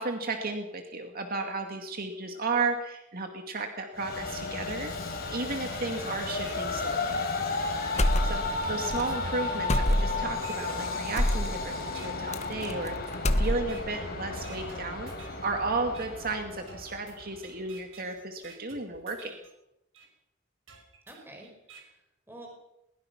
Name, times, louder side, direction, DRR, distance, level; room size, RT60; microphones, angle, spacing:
voice 1, 0.0-4.9 5.3-7.2 8.2-8.4 8.7-12.9 13.4-19.4, right 3 dB, 50° right, 4 dB, 2.3 m, -33 dB
Train, 3.9-17.4, left 3 dB, 50° left, 5.3 m, -34 dB
sound 1, 5.9-6.0 6.4-7.5 7.9-8.1 8.7-11.5 11.9-12.1 12.7-13.1 13.4-14.0 14.4-15.5 15.9-16.1 16.7-19.5 19.9-20.1 20.7-21.8, right 5 dB, 80° right, 5.6 m, -51 dB
sound 2, 8.0-8.6 8.9-9.0 9.7-10.3 11.2-11.5 12.3-12.9 13.1-13.9, left 1 dB, 35° left, 1.4 m, -25 dB
voice 2, 21.1-22.5, right 1 dB, 10° right, 1 dB, 5.1 m, -49 dB
22.5 x 21.5 x 6.0 m, 0.86 s
head